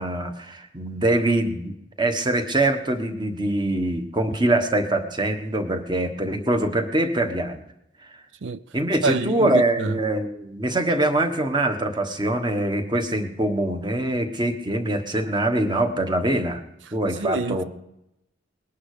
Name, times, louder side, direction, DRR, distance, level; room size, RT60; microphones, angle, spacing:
voice 1, 0.0-7.6 8.7-16.6 16.9-17.6, right 1 dB, 25° right, 1.4 m, -23 dB
voice 2, 9.0-10.0 17.2-17.6, right 4 dB, 75° right, 0.5 m, -26 dB
20.0 x 11.5 x 5.0 m
head